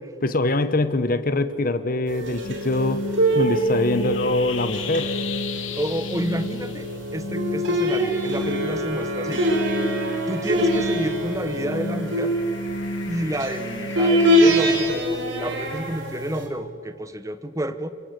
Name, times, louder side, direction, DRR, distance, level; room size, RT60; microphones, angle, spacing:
voice 1, 0.2-3.0 3.3-5.1, left 2 dB, 40° left, 11 dB, 1.0 m, -23 dB
sound 1, 2.1-16.5, equal, 60° right, 4.2 m, -24 dB
sound 2, 2.4-14.7, left 2 dB, 65° left, 1.8 m, -33 dB
voice 2, 5.7-9.5 10.3-12.4 13.1-17.9, right 1 dB, 15° right, 12 dB, 0.9 m, -30 dB
23.5 x 23.0 x 8.2 m, 2.5 s
head